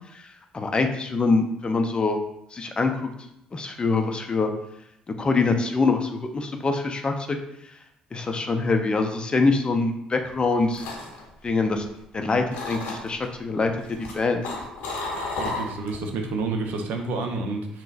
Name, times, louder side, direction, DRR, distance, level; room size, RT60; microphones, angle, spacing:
voice 1, 0.1-2.2 2.5-3.1 3.5-4.5 5.2-7.4 8.1-10.8 11.4-11.8 12.1-14.4, left 3 dB, 30° left, 5 dB, 0.4 m, -24 dB
sound 1, 10.3-12.2 12.5-13.3 13.8-16.1 16.4-16.7, left 3 dB, 70° left, 0.6 m, -33 dB
voice 2, 15.4-17.8, right 3 dB, 65° right, 4 dB, 0.4 m, -29 dB
3.8 x 2.0 x 2.5 m, 0.80 s
hypercardioid pair, 50°, 3 cm